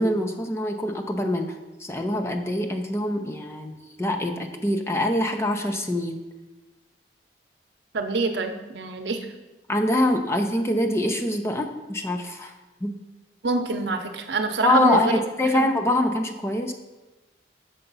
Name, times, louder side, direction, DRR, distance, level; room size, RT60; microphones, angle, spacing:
voice 1, 0.0-1.5 1.8-6.2 9.7-12.5 12.8-12.9 14.6-16.7, left 1 dB, 15° left, 5 dB, 0.5 m, -24 dB
voice 2, 7.9-9.3 13.4-15.2 15.5-15.7, right 3 dB, 70° right, 6 dB, 0.7 m, -26 dB
6.8 x 4.9 x 5.4 m, 1.1 s
head